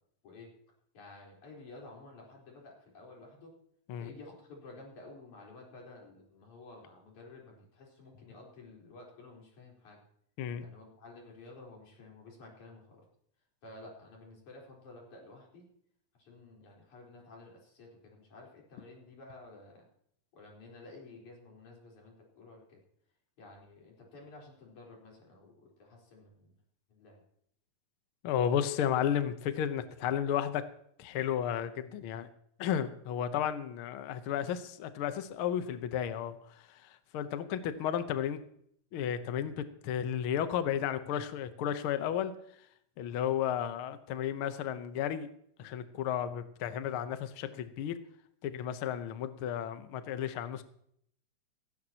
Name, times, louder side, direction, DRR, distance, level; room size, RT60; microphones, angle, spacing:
voice 1, 0.9-3.5 4.0-10.0 10.6-13.1 13.6-15.7 16.2-19.9 20.3-22.8 23.4-26.5 26.9-27.2, left 2 dB, 60° left, -1 dB, 5.6 m, -52 dB
voice 2, 28.2-30.6 31.0-32.3 32.6-36.3 36.8-38.4 38.9-42.3 43.0-45.3 45.6-48.0 48.4-50.6, left 9 dB, 85° left, 10 dB, 1.1 m, -33 dB
17.0 x 16.0 x 2.9 m, 0.68 s
omnidirectional pair, 3.9 m